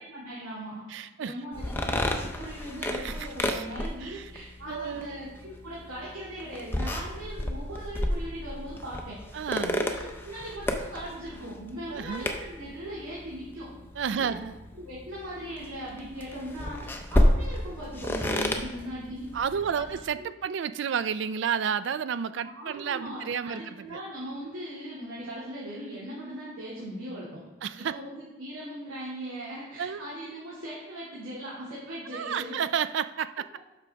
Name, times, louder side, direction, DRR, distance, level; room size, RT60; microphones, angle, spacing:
voice 1, 0.0-9.1 9.7-13.7 14.1-14.3 14.8-19.3 19.7-20.3 22.4-27.4 27.7-32.6 33.2-33.3, equal, 90° right, -7 dB, 2.4 m, -39 dB
voice 2, 0.9-1.3 2.9-3.7 4.0-4.3 4.7-5.1 9.3-9.8 11.9-12.4 14.0-14.6 19.3-24.0 27.6-28.0 29.8-30.1 32.1-33.5, right 7 dB, 60° right, 14 dB, 0.3 m, -31 dB
sound 1, 1.5-20.1, left 1 dB, 10° left, 0.6 m, -32 dB
12.0 x 5.9 x 3.4 m, 1.2 s
head